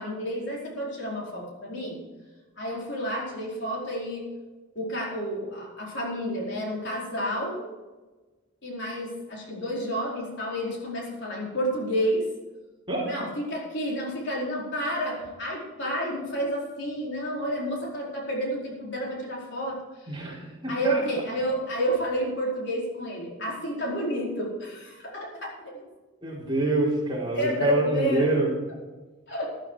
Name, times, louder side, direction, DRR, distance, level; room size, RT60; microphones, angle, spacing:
voice 1, 0.0-2.0 2.6-4.3 4.7-7.6 8.6-12.2 13.0-19.8 20.0-20.1 20.7-25.3 25.7-25.9 27.3-28.3 29.3-29.5, equal, 55° left, -3 dB, 4.8 m, -30 dB
voice 2, 20.1-21.0 26.2-28.5, right 1 dB, 25° right, -4 dB, 4.2 m, -26 dB
13.5 x 13.0 x 4.8 m, 1.2 s
head